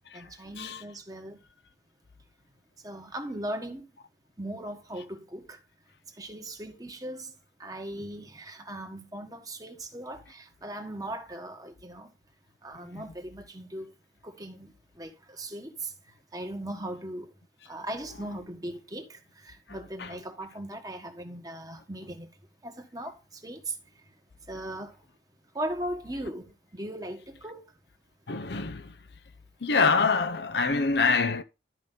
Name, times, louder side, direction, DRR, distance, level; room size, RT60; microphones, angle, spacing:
voice 1, 0.1-1.4 2.8-3.8 4.4-5.6 6.2-7.3 7.6-12.1 12.6-13.9 14.2-15.9 16.3-17.3 17.7-22.3 22.6-23.7 24.5-24.9 25.5-26.5 26.7-27.6, right 1 dB, 20° right, 1.5 m, -38 dB
voice 2, 28.3-28.9 29.6-31.4, left 4 dB, 70° left, 0.7 m, -25 dB
12.5 x 5.2 x 3.8 m
head